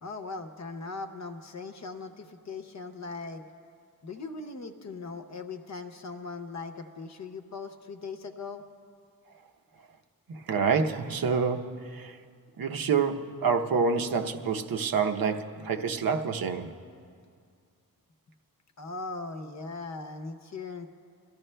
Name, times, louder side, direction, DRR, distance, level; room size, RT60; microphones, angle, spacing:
voice 1, 0.0-3.4 4.0-8.6 18.8-20.9, left 3 dB, 50° left, 7 dB, 0.8 m, -39 dB
voice 2, 10.3-12.2 12.6-16.7, right 5 dB, 70° right, 5 dB, 0.8 m, -27 dB
26.5 x 14.0 x 2.2 m, 2.3 s
wide cardioid pair, 160°, 36 cm